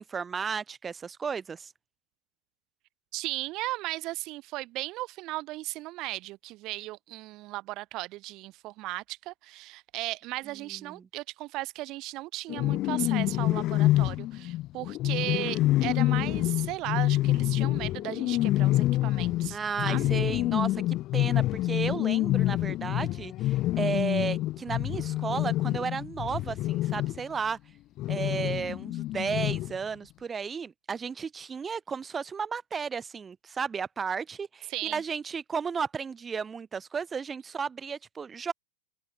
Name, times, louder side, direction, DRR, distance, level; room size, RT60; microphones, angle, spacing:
voice 1, 0.0-1.7 10.7-11.0 19.5-27.6 28.1-38.5, right 6 dB, 20° right, 5.9 m, -34 dB
voice 2, 3.1-20.1 34.7-35.0, right 19 dB, 45° right, 2.5 m, -36 dB
sound 1, 12.5-27.2 28.0-29.8, left 16 dB, 40° left, 0.5 m, -27 dB
hypercardioid pair, 120°, 0 cm